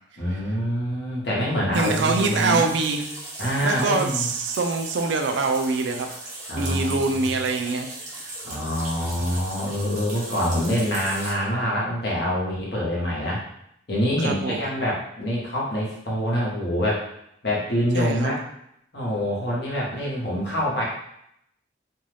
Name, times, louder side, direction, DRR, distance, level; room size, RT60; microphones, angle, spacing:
voice 1, 0.2-2.7 3.4-4.3 6.5-7.2 8.4-13.4 13.9-17.1 17.4-18.4 18.9-20.8, equal, 60° left, -5 dB, 1.0 m, -25 dB
sound 1, 1.7-11.3, right 2 dB, 40° right, 0.7 m, -37 dB
voice 2, 1.7-3.0 3.6-6.1 6.6-8.3 14.2-14.7 17.9-18.3, right 3 dB, 70° right, 4 dB, 0.4 m, -24 dB
2.6 x 2.3 x 3.2 m, 0.76 s
head